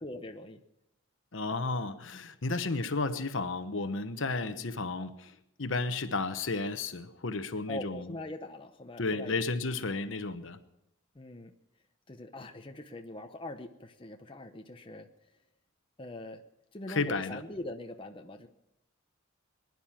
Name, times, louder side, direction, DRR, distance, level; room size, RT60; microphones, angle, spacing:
voice 1, 0.0-0.6 4.5-4.8 7.7-9.4 11.1-11.5 12.1-15.1 16.0-16.4 16.7-18.5, left 1 dB, 25° left, 4 dB, 0.8 m, -42 dB
voice 2, 1.3-8.1 9.0-10.6 16.9-17.4, left 3 dB, 65° left, 10 dB, 1.0 m, -33 dB
21.0 x 11.0 x 5.9 m, 0.86 s
head